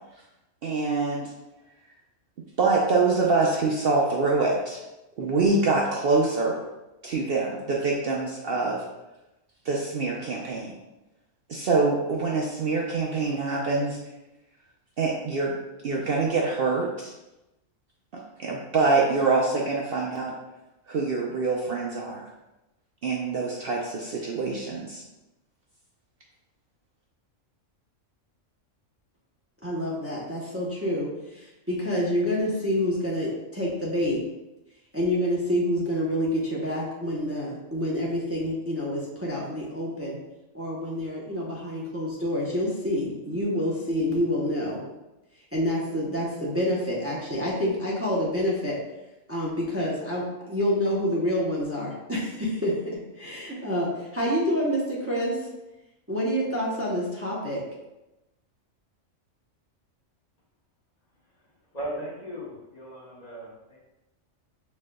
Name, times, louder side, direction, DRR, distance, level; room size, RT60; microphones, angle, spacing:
voice 1, 0.6-1.3 2.6-4.8 5.2-6.6 7.0-8.8 9.6-10.7 11.5-14.0 15.0-15.5 15.8-17.1 18.1-20.3 20.9-22.2 23.0-25.0, right 3 dB, 60° right, -2 dB, 0.7 m, -25 dB
voice 2, 29.6-34.2 34.9-40.2 40.5-44.8 45.5-48.8 49.3-52.7 53.2-55.4 56.1-57.6, equal, 15° right, -5 dB, 0.6 m, -27 dB
voice 3, 61.7-63.8, right 1 dB, 35° left, -5 dB, 0.9 m, -37 dB
5.3 x 3.7 x 2.2 m, 0.97 s
omnidirectional pair, 1.3 m